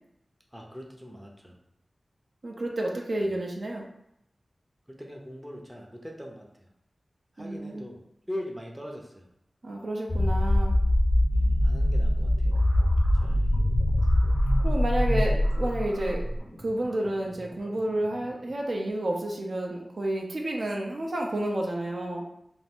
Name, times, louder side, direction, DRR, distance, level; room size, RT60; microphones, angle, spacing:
voice 1, 0.5-1.6 3.3-3.4 4.9-6.7 7.3-8.0 8.3-9.3 11.3-12.5 13.1-13.6, equal, 5° right, -1 dB, 0.5 m, -41 dB
voice 2, 2.4-3.8 7.4-7.8 9.6-10.7 14.6-16.2 16.6-22.2, right 1 dB, 60° right, 0 dB, 0.5 m, -30 dB
sound 1, 10.1-16.4, left 1 dB, 50° left, 0.4 m, -23 dB
sound 2, 12.1-18.9, right 1 dB, 90° right, 1.1 m, -48 dB
2.6 x 2.4 x 3.4 m, 0.78 s
wide cardioid pair, 95°, 0 cm